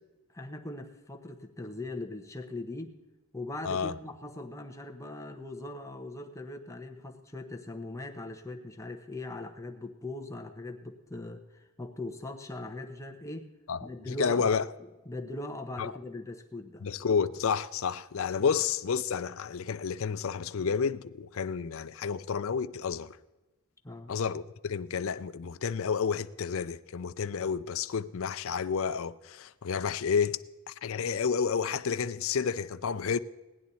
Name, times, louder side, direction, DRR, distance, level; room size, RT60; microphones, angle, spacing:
voice 1, 0.3-3.0 3.3-13.5 13.8-14.7 15.1-16.9 18.4-18.5 23.8-24.1, left 2 dB, 15° left, 1.0 m, -40 dB
voice 2, 14.2-14.6 15.8-15.9 16.8-23.2 24.1-30.4 30.7-33.2, left 6 dB, 70° left, 0.5 m, -30 dB
18.0 x 10.5 x 4.2 m
head